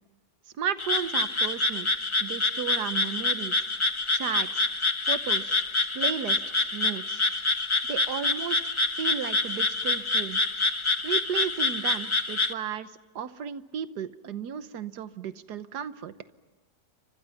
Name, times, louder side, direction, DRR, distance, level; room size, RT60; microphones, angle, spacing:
voice 1, 0.6-1.9 2.2-3.6 4.1-4.6 5.1-5.6 5.9-7.2 7.9-10.4 11.0-16.1, right 8 dB, 75° right, 13 dB, 1.5 m, -34 dB
Frog, 0.8-12.5, left 2 dB, 20° left, 0.8 m, -27 dB
29.5 x 25.5 x 5.8 m, 1.2 s
omnidirectional pair, 1.8 m